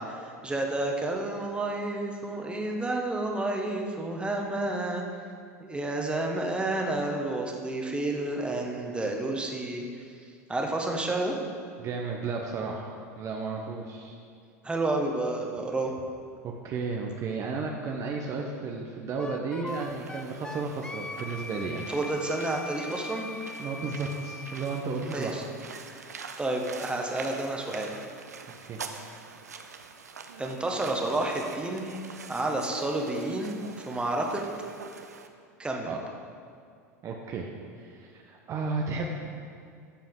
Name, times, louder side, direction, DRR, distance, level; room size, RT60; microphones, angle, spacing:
voice 1, 0.0-5.0 5.6-9.8 10.5-11.3 14.6-15.9 21.9-23.3 25.0-25.4 25.8-26.0 26.4-27.9 30.4-31.9 32.3-34.4 35.6-35.9, right 2 dB, 10° right, 1 dB, 1.4 m, -30 dB
voice 2, 11.8-12.9 13.2-14.1 16.4-21.8 23.6-25.4 28.6-28.8 35.8-36.0 37.0-37.5 37.8-39.1, right 4 dB, 40° right, 1 dB, 1.0 m, -33 dB
Wind instrument woodwind instrument, 19.2-24.8, left 3 dB, 10° left, 0.4 m, -40 dB
sound 1, 19.7-35.3, right 5 dB, 85° right, 0.6 m, -45 dB
13.0 x 7.4 x 3.8 m, 2.3 s
hypercardioid pair, 85°, 9 cm